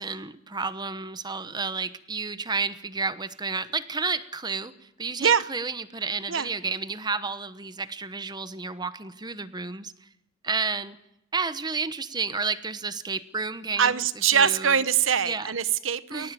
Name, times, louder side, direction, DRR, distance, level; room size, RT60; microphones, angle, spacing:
voice 1, 0.0-4.7 5.0-10.1 10.4-11.0 11.3-14.0 14.3-14.8 15.2-15.5 16.1-16.3, right 4 dB, 20° right, 13 dB, 1.1 m, -31 dB
voice 2, 13.8-16.3, right 7 dB, 85° right, 15 dB, 1.0 m, -23 dB
22.5 x 18.5 x 7.5 m, 0.85 s
head